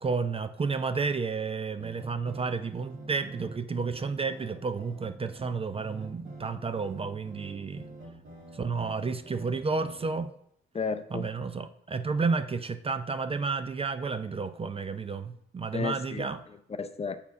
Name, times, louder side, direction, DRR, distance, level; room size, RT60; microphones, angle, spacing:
voice 1, 0.0-7.9 8.5-10.3 11.1-16.4, right 4 dB, 30° right, 0.4 m, -31 dB
sound 1, 1.8-10.1, right 2 dB, 70° right, 1.7 m, -46 dB
voice 2, 10.7-11.3 15.7-17.2, left 5 dB, 30° left, 0.5 m, -34 dB
7.1 x 4.5 x 5.2 m
cardioid pair, 75°, 21 cm